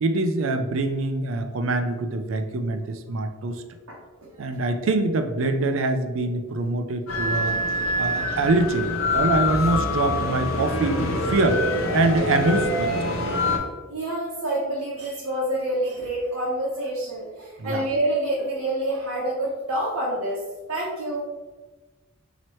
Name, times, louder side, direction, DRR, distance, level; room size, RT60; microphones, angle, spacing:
voice 1, 0.0-3.6 4.4-7.6 8.0-11.6 11.9-12.9 17.6-17.8, right 2 dB, 70° right, 7 dB, 0.4 m, -24 dB
voice 2, 3.9-4.3 13.9-20.4 20.7-21.2, right 1 dB, 85° right, -7 dB, 0.8 m, -27 dB
sound 1, 7.1-13.6, left 2 dB, 75° left, 0.7 m, -25 dB
3.0 x 2.9 x 4.2 m, 1.2 s
head